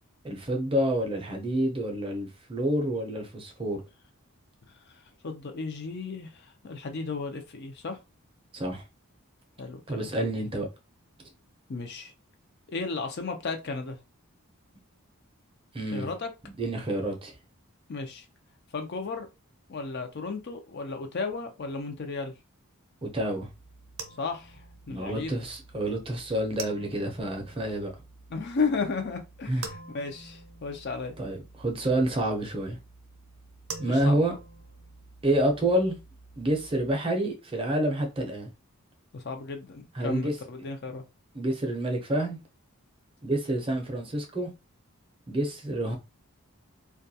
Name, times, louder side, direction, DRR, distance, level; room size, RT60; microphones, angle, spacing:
voice 1, 0.2-3.8 8.5-8.8 9.9-10.7 15.7-16.1 16.5-17.3 23.0-23.5 24.9-27.9 29.5-29.7 31.2-32.8 33.8-34.3 35.2-36.0 36.4-38.5 39.9-40.3 41.3-42.4 43.2-44.5 45.3-46.0, right 1 dB, 25° right, 0.6 m, -28 dB
voice 2, 5.2-8.0 9.6-10.1 11.7-12.1 12.7-14.0 15.9-16.3 17.9-18.2 18.7-19.3 19.7-22.3 24.2-24.6 24.9-25.4 28.3-31.1 33.9-34.2 39.1-41.0, left 4 dB, 50° left, 0.5 m, -34 dB
sound 1, 23.4-36.9, right 4 dB, 65° right, 0.5 m, -47 dB
2.3 x 2.2 x 2.7 m
head